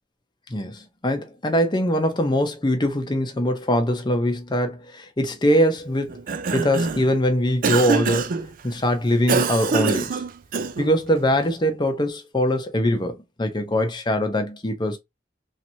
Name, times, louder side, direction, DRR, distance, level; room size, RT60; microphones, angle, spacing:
voice 1, 0.5-6.2 6.5-8.3 8.6-10.2 10.8-15.0, equal, 25° left, 0.7 m, -22 dB
Cough, 6.1-7.1 7.6-8.4 9.3-10.9, right 5 dB, 45° right, 0.4 m, -24 dB
3.2 x 2.9 x 2.7 m
head